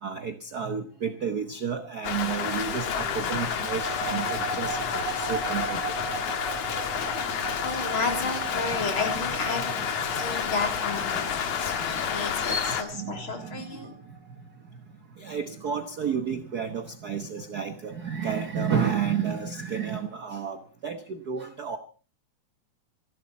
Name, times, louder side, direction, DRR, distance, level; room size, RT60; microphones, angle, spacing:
voice 1, 0.0-4.8 5.1-5.8 9.5-9.9 10.4-10.6 11.8-12.1 12.4-13.8 15.2-21.8, right 6 dB, 70° right, 8 dB, 0.9 m, -31 dB
Rain, 2.0-12.8, left 8 dB, 60° left, 2.5 m, -30 dB
sound 1, 2.0-14.3, right 4 dB, 50° right, 8.4 m, -38 dB
voice 2, 7.6-9.7 10.1-14.0, left 3 dB, 40° left, 3 dB, 4.1 m, -32 dB
27.0 x 12.0 x 4.2 m, 0.37 s
omnidirectional pair, 3.5 m